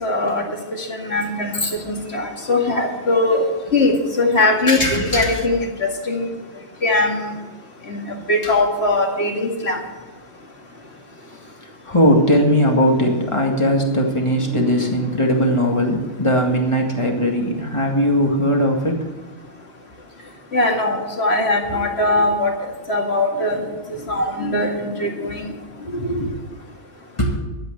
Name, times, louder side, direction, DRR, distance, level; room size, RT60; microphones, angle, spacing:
voice 1, 0.0-0.4 0.9-3.4 3.7-6.3 6.8-7.2 7.9-8.0 8.3-9.8 14.5-14.7 15.4-15.5 20.5-22.5 22.9-23.6 23.9-25.5, left 2 dB, 50° left, 1 dB, 2.4 m, -20 dB
voice 2, 4.7-5.4 8.4-8.5 11.9-19.0 21.7-21.8 22.1-22.2 25.9-26.4 27.2-27.4, equal, 20° left, 1 dB, 2.0 m, -19 dB
12.5 x 8.2 x 8.1 m, 1.1 s
omnidirectional pair, 1.4 m